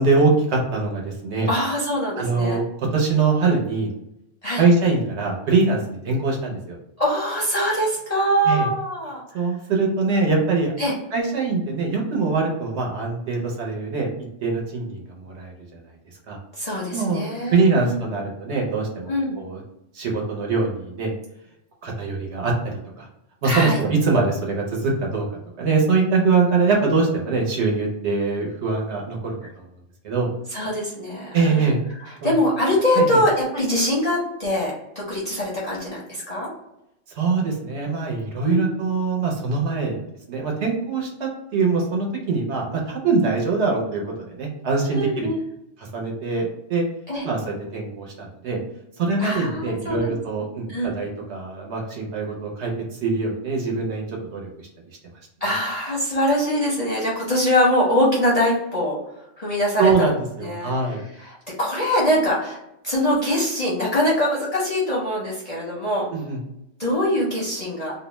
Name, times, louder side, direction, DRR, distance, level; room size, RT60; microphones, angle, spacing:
voice 1, 0.0-1.5 2.2-3.9 4.5-6.8 8.5-8.7 9.3-10.7 11.1-14.1 14.4-15.8 16.3-16.4 16.9-17.2 17.5-19.6 19.9-21.1 21.8-22.5 23.0-23.1 23.4-25.3 25.6-29.6 30.0-30.3 31.3-31.8 32.2-32.4 33.0-33.2 37.1-40.0 40.3-45.3 45.8-46.8 47.2-48.6 49.0-54.7 59.8-61.0 66.1-66.4, right 4 dB, 65° right, 0 dB, 0.9 m, -23 dB
voice 2, 1.5-2.6 4.4-4.6 7.0-9.2 10.8-10.9 16.6-18.0 19.1-19.4 23.4-23.8 30.5-31.7 32.2-36.5 38.4-38.7 44.9-45.4 47.1-47.3 49.2-50.1 50.7-50.9 55.4-59.0 59.4-60.1 60.4-60.7 61.3-62.6 62.8-66.1 66.8-67.9, equal, 45° left, -6 dB, 0.5 m, -23 dB
2.5 x 2.0 x 3.0 m, 0.84 s
omnidirectional pair, 1.3 m